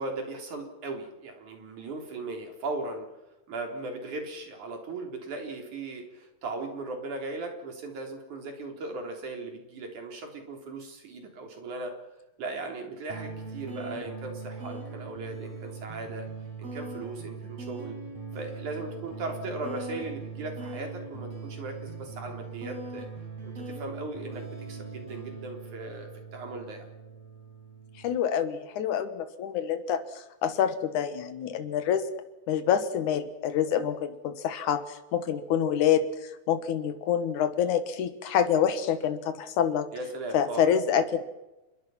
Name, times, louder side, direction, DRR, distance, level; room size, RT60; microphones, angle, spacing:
voice 1, 0.0-3.1 3.5-11.9 12.4-16.3 16.6-18.0 18.3-23.1 23.4-26.9 39.9-40.7, right 2 dB, 75° right, 3 dB, 5.1 m, -38 dB
sound 1, 13.1-28.2, right 4 dB, 50° right, 5.9 m, -40 dB
voice 2, 28.0-32.0 32.5-36.1 36.5-39.9 40.3-41.2, left 8 dB, 85° left, 10 dB, 2.9 m, -27 dB
28.0 x 22.0 x 5.8 m, 1.0 s
omnidirectional pair, 3.4 m